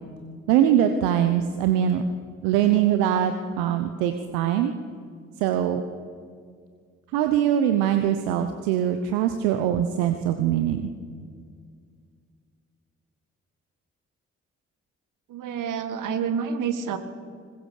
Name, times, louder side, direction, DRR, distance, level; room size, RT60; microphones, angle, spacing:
voice 1, 0.5-2.0 2.4-4.7 5.4-5.8 7.1-10.9, right 10 dB, 80° right, 8 dB, 1.0 m, -22 dB
voice 2, 15.3-17.0, right 7 dB, 65° right, 10 dB, 1.8 m, -28 dB
21.0 x 21.0 x 6.7 m, 2.1 s
hypercardioid pair, 45°, 33 cm